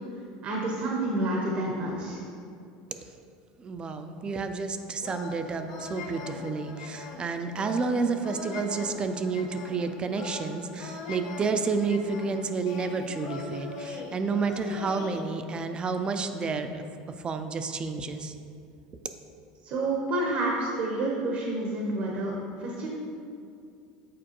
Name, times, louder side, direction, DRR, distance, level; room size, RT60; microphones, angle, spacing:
voice 1, 0.4-2.2 19.6-22.3 22.6-22.9, right 2 dB, 55° right, -1 dB, 0.9 m, -29 dB
voice 2, 3.6-16.8 17.2-18.3, right 4 dB, 25° right, 8 dB, 0.4 m, -30 dB
sound 1, 5.0-15.2, left 3 dB, 80° left, 0.7 m, -41 dB
7.5 x 4.4 x 2.9 m, 2.4 s
supercardioid pair, 110°, 3 cm